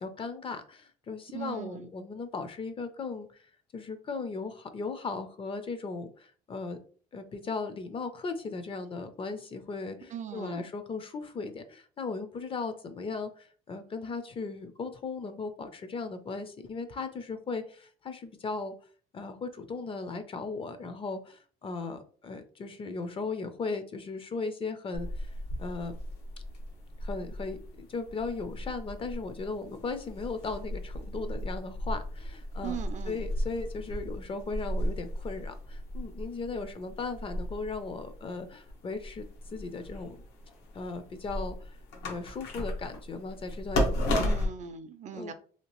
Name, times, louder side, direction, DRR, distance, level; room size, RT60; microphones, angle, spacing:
voice 1, 0.0-3.3 3.7-6.8 7.1-18.7 19.1-25.3 25.6-26.0 27.0-32.8 33.1-40.2 40.7-41.8 42.1-44.4 45.1-45.3, left 4 dB, 30° left, 9 dB, 0.5 m, -37 dB
voice 2, 1.3-1.9 10.1-10.6 32.6-33.2 44.1-45.3, right 8 dB, 45° right, 10 dB, 0.4 m, -39 dB
sound 1, 24.9-44.5, left 1 dB, 85° left, 0.9 m, -36 dB
2.8 x 2.4 x 3.0 m, 0.43 s
cardioid pair, 110°, 17 cm